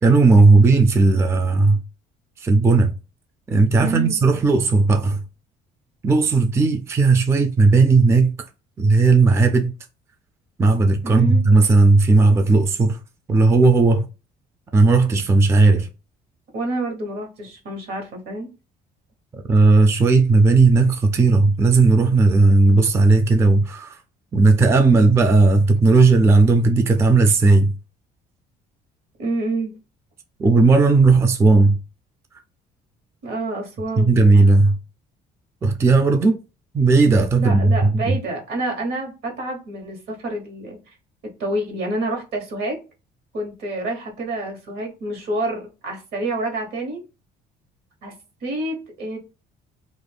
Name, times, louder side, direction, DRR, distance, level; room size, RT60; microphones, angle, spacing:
voice 1, 0.0-1.8 2.4-2.9 3.5-5.2 6.0-8.4 8.8-9.7 10.6-13.0 13.3-14.1 14.7-15.9 19.5-23.9 24.3-27.7 30.4-31.8 34.0-34.8 35.6-36.4 36.7-38.2, right 3 dB, 15° right, 0.3 m, -15 dB
voice 2, 3.8-4.2 11.0-11.4 16.5-18.5 29.2-29.7 33.2-34.1 37.3-40.9 41.4-42.8 43.3-47.0 48.0-48.1 48.4-49.2, right 2 dB, 75° right, 1.2 m, -28 dB
2.5 x 2.1 x 3.3 m
cardioid pair, 110°, 17 cm